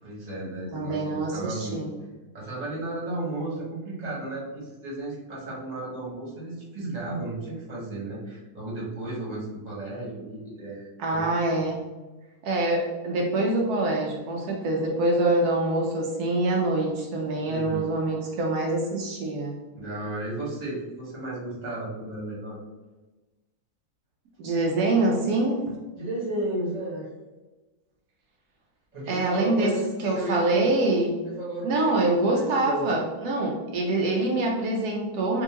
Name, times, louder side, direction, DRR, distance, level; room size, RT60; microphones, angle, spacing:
voice 1, 0.0-1.8 2.3-11.2 17.4-17.9 19.7-22.6 26.0-27.1 28.9-30.7 31.3-32.0 32.3-32.9, right 2 dB, 30° right, -6 dB, 1.2 m, -34 dB
voice 2, 0.7-1.9 11.0-11.8 12.4-19.6 24.4-25.6 29.1-29.7 30.0-31.2 31.6-35.4, right 2 dB, 80° right, -1 dB, 1.1 m, -25 dB
3.6 x 2.6 x 2.8 m, 1.2 s
omnidirectional pair, 1.7 m